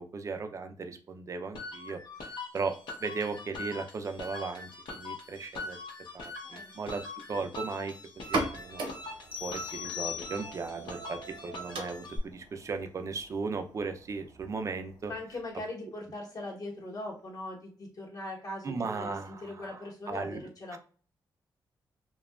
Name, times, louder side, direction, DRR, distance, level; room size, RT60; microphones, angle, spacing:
voice 1, 0.0-5.8 6.1-7.0 7.3-8.8 9.4-15.1 18.6-19.8 20.1-20.8, right 4 dB, 40° right, 7 dB, 0.4 m, -37 dB
sound 1, 1.5-12.2, left 2 dB, 80° left, 0.8 m, -43 dB
sound 2, 8.1-15.6, right 2 dB, 80° right, 0.7 m, -40 dB
sound 3, 9.3-10.8, left 12 dB, 25° left, 0.4 m, -39 dB
voice 2, 15.1-20.8, left 2 dB, 50° left, 0 dB, 0.9 m, -40 dB
2.7 x 2.2 x 2.2 m, 0.40 s
wide cardioid pair, 120°, 8 cm